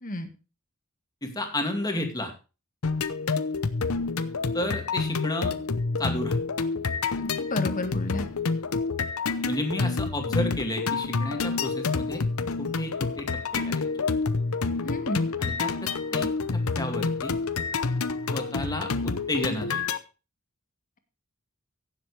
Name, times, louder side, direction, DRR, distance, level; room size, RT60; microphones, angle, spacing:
voice 1, 1.2-2.3 4.5-5.5 6.0-6.4 9.4-12.3 12.6-13.8 15.4-17.4 18.3-19.8, left 1 dB, 20° left, 4 dB, 2.3 m, -32 dB
sound 1, 2.8-20.0, left 4 dB, 80° left, 0.8 m, -28 dB
voice 2, 7.2-8.2 14.8-15.2, left 1 dB, 40° left, 8 dB, 1.6 m, -31 dB
16.5 x 7.6 x 3.3 m, 0.31 s
head